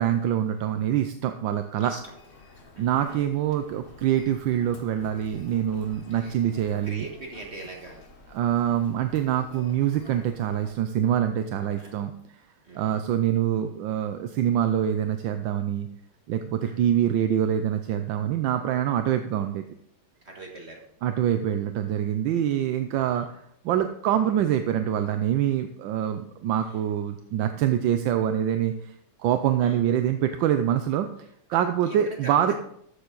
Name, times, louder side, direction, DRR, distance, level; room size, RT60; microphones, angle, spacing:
voice 1, 0.0-1.9 2.8-7.0 8.3-12.1 12.7-15.9 16.3-19.6 21.0-31.1 31.5-32.5, right 10 dB, 70° right, 8 dB, 1.2 m, -25 dB
Human voice, 1.8-10.8, left 3 dB, 40° left, 0.8 m, -50 dB
voice 2, 1.8-2.1 2.8-3.2 6.1-6.4 6.8-8.0 11.6-12.0 12.6-13.0 16.6-16.9 20.2-20.8 23.0-23.3 29.6-29.8 31.8-32.5, right 2 dB, 35° right, 0 dB, 1.5 m, -42 dB
13.0 x 7.0 x 3.9 m, 0.71 s
omnidirectional pair, 2.4 m